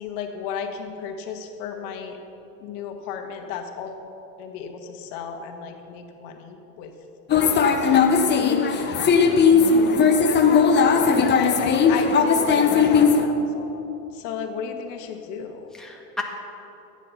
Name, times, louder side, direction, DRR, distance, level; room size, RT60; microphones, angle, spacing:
voice 1, 0.0-2.2 2.6-4.0 4.4-6.9 7.3-8.9 9.8-10.4 11.1-13.9 14.1-15.7, left 7 dB, 55° left, 5 dB, 1.8 m, -34 dB
sound 1, 7.3-13.3, left 5 dB, 20° left, 1.0 m, -18 dB
voice 2, 9.5-10.1 15.7-16.2, left 3 dB, ahead, -1 dB, 1.7 m, -34 dB
14.0 x 9.3 x 5.8 m, 2.9 s
hypercardioid pair, 105°, 47 cm